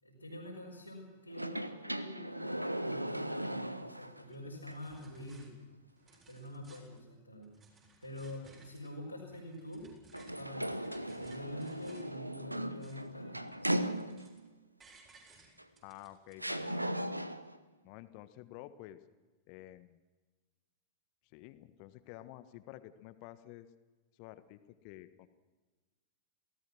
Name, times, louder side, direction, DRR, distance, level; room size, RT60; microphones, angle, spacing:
voice 1, 0.0-5.6 6.3-7.5 8.0-9.8 10.3-13.5, left 1 dB, 90° left, -5 dB, 5.0 m, -46 dB
sound 1, 1.3-4.2 4.7-4.8 10.1-14.5 15.6-15.7 16.4-17.6, right 1 dB, 85° right, 0.9 m, -37 dB
sound 2, 4.2-4.4 4.7-5.5 5.9-7.0 7.4-8.9 9.3-12.1 12.5-13.2 13.5-14.5 14.8-16.3, right 4 dB, 25° right, 7.4 m, -62 dB
voice 2, 15.8-17.1 17.8-19.0 19.5-20.0 21.2-23.7 24.2-25.3, left 15 dB, 45° left, 12 dB, 1.4 m, -51 dB
28.0 x 18.0 x 6.2 m, 1.3 s
figure-of-eight pair, 90°, 0 cm